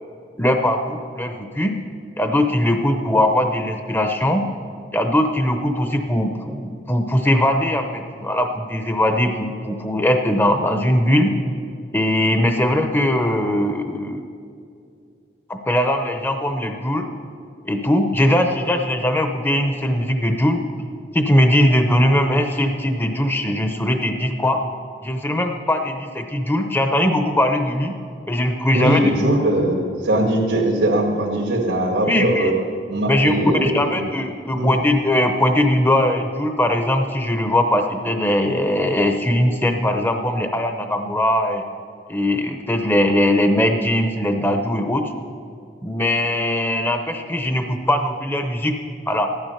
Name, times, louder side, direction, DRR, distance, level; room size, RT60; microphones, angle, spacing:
voice 1, 0.4-1.7 2.2-4.4 4.9-11.3 11.9-14.2 15.5-17.1 17.6-20.6 21.1-24.6 25.0-27.9 28.3-29.0 32.0-32.5 33.1-41.6 42.1-45.1 45.8-48.7 49.1-49.3, left 1 dB, 10° left, 5 dB, 0.7 m, -20 dB
voice 2, 28.7-32.5 32.9-34.1 34.5-34.7, right 1 dB, 90° right, -4 dB, 2.0 m, -20 dB
15.0 x 12.5 x 5.7 m, 2.4 s
head